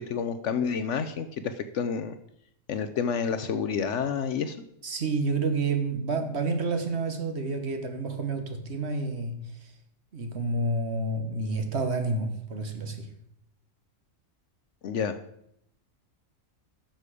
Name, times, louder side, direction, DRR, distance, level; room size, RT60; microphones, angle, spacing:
voice 1, 0.0-2.2 2.7-4.6 14.8-15.2, left 6 dB, 65° left, 11 dB, 0.9 m, -29 dB
voice 2, 4.8-9.4 9.6-9.7 10.1-13.1, right 3 dB, 55° right, 6 dB, 1.5 m, -29 dB
11.5 x 6.8 x 4.9 m, 0.74 s
omnidirectional pair, 1.4 m